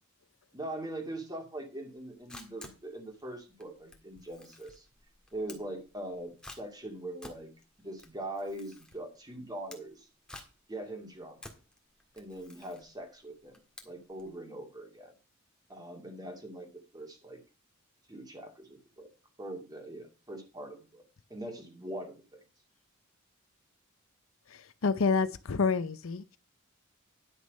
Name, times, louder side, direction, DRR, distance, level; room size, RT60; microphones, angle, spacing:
voice 1, 0.5-4.9 5.3-7.5 7.8-10.1 10.7-11.4 12.2-13.6 13.8-15.1 15.7-16.7 16.9-17.4 18.1-19.1 19.4-21.0 21.3-22.4, right 1 dB, 20° right, 2.5 m, -42 dB
Camera, 1.9-14.3, left 1 dB, 5° left, 1.7 m, -52 dB
voice 2, 24.8-26.4, left 4 dB, 65° left, 0.6 m, -28 dB
10.5 x 6.3 x 5.4 m
head